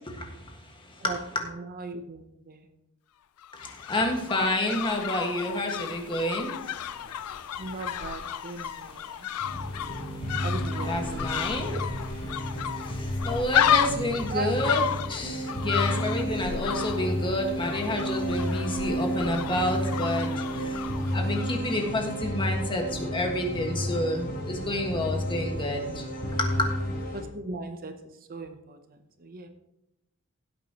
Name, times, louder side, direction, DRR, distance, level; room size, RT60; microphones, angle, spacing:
voice 1, 1.0-2.7 7.6-9.3 10.4-11.4 11.7-11.9 14.3-14.5 15.5-15.6 25.0-25.1 25.4-25.7 27.1-27.9 28.3-29.5, right 3 dB, 40° right, 7 dB, 0.8 m, -38 dB
sound 1, 3.4-21.6 21.8-21.9, left 10 dB, 80° left, 0.4 m, -32 dB
voice 2, 3.9-6.5 10.8-11.7 12.9-14.8 15.1-20.3 21.1-25.8 26.4-26.5, left 1 dB, 20° left, 2 dB, 1.6 m, -29 dB
sound 2, 9.4-27.2, equal, 45° left, 3.5 m, -32 dB
16.5 x 8.3 x 3.0 m, 0.88 s
head